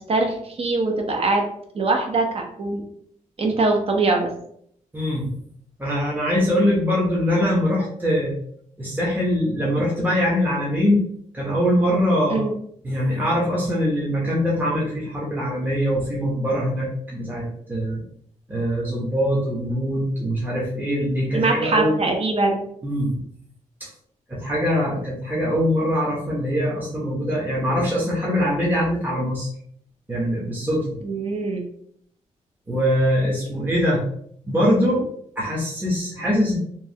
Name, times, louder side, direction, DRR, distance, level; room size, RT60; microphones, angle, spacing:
voice 1, 0.1-1.5 1.7-2.8 3.4-4.3 12.3-12.5 21.3-22.6 31.0-31.6, right 3 dB, 45° right, 2 dB, 0.7 m, -22 dB
voice 2, 4.9-5.3 5.8-8.4 8.8-11.0 11.3-12.4 12.8-18.0 18.5-22.0 22.8-23.2 23.8-23.9 24.3-29.5 30.1-31.0 32.7-34.0 34.4-35.1 35.4-36.6, equal, 15° right, -5 dB, 0.8 m, -22 dB
3.0 x 2.2 x 2.7 m, 0.66 s
cardioid pair, 90°, 13 cm